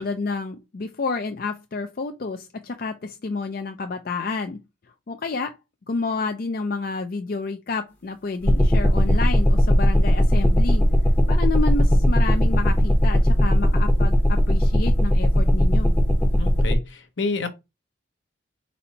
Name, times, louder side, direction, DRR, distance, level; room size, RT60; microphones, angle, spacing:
voice 1, 0.0-4.6 4.8-5.6 5.9-10.9 11.3-16.0, left 4 dB, 45° left, 0.4 m, -29 dB
sound 1, 8.5-16.8, equal, 10° left, 0.7 m, -18 dB
voice 2, 16.4-17.5, left 3 dB, 70° left, 0.9 m, -28 dB
4.3 x 4.2 x 2.8 m
head